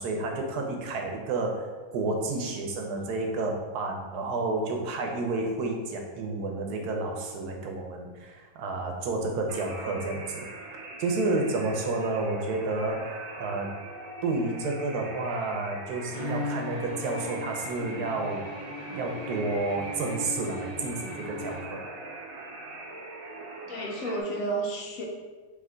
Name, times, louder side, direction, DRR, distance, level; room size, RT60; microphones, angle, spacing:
voice 1, 0.0-10.4 11.0-13.7 14.2-18.4 18.9-21.8, right 3 dB, 90° right, 2 dB, 1.2 m, -30 dB
sound 1, 9.5-24.2, right 2 dB, 70° right, 1.0 m, -42 dB
Bowed string instrument, 16.1-22.1, left 1 dB, 35° left, 0.6 m, -38 dB
voice 2, 23.7-25.0, right 2 dB, 70° left, 0 dB, 1.0 m, -31 dB
3.4 x 3.3 x 3.7 m, 1.4 s
omnidirectional pair, 1.6 m